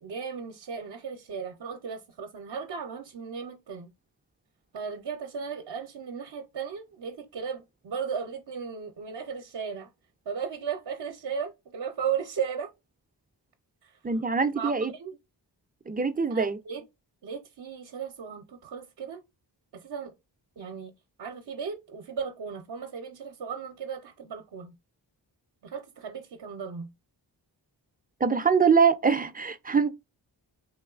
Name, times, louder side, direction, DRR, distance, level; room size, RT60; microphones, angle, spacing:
voice 1, 0.0-3.9 4.7-9.9 10.3-12.7 14.6-15.2 16.3-16.8 17.2-19.2 19.7-20.1 20.6-20.9 21.2-24.7 25.6-26.9, right 6 dB, 60° right, 0.6 m, -36 dB
voice 2, 14.0-14.9 15.9-16.6 28.2-29.9, right 5 dB, 20° right, 0.4 m, -23 dB
3.2 x 3.0 x 2.3 m
cardioid pair, 60°, 44 cm